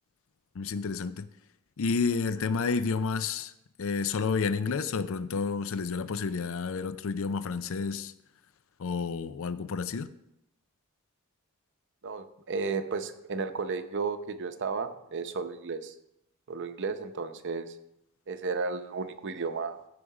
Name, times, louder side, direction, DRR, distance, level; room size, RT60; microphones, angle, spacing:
voice 1, 0.5-1.3 1.8-3.5 3.8-8.1 8.8-10.1, left 5 dB, 65° left, 0.5 m, -30 dB
voice 2, 12.0-15.9 16.5-17.7 18.3-19.8, right 4 dB, 55° right, 0.7 m, -33 dB
14.5 x 5.0 x 4.8 m
head